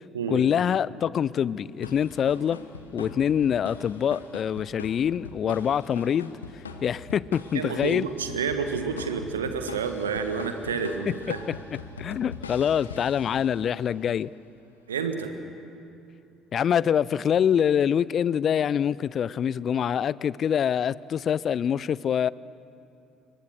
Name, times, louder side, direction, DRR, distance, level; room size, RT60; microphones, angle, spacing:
voice 1, 0.3-2.6 2.9-6.3 6.8-8.0 11.3-11.4 12.0-14.3 16.5-22.3, left 8 dB, 45° left, 22 dB, 0.5 m, -25 dB
sound 1, 1.8-13.8, left 4 dB, 80° left, 1.2 m, -42 dB
voice 2, 7.5-11.4 14.9-15.3, right 6 dB, 80° right, 7 dB, 1.5 m, -29 dB
29.5 x 22.5 x 6.5 m, 2.6 s
figure-of-eight pair, 55°, 0 cm